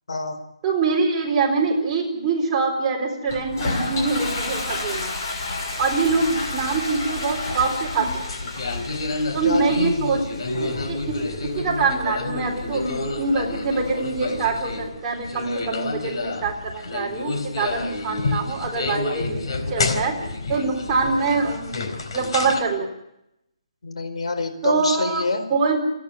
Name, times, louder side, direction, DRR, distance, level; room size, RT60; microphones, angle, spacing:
voice 1, 0.6-5.1 5.8-8.2 9.3-20.2 20.5-21.7 22.1-22.9 24.6-25.8, right 4 dB, 15° right, -2 dB, 4.0 m, -24 dB
Toilet flush, 3.3-14.9, left 2 dB, 35° left, 6.3 m, -32 dB
sound 1, 7.5-22.6, left 3 dB, 55° left, 4.1 m, -29 dB
voice 2, 10.5-11.0 23.8-25.4, left 3 dB, 70° left, 8 dB, 4.9 m, -27 dB
29.0 x 10.5 x 9.4 m, 0.82 s
hypercardioid pair, 170°, 3 cm